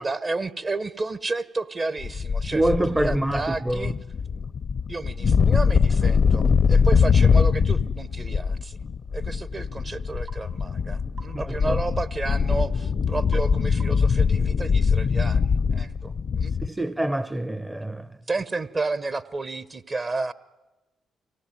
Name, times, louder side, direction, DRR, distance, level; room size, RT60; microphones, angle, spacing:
voice 1, 0.0-3.9 4.9-8.8 9.1-16.5 18.3-20.3, right 3 dB, 40° right, 1.2 m, -31 dB
sound 1, 2.0-16.7, left 5 dB, 60° left, 0.7 m, -22 dB
voice 2, 2.5-3.9 11.3-11.8 16.6-18.1, right 1 dB, 15° right, 0.8 m, -26 dB
sound 2, 10.3-10.5 11.2-11.4 13.3-13.5 13.8-14.1, right 5 dB, 65° right, 6.5 m, -45 dB
24.0 x 17.5 x 9.4 m
hypercardioid pair, 45°, 0 cm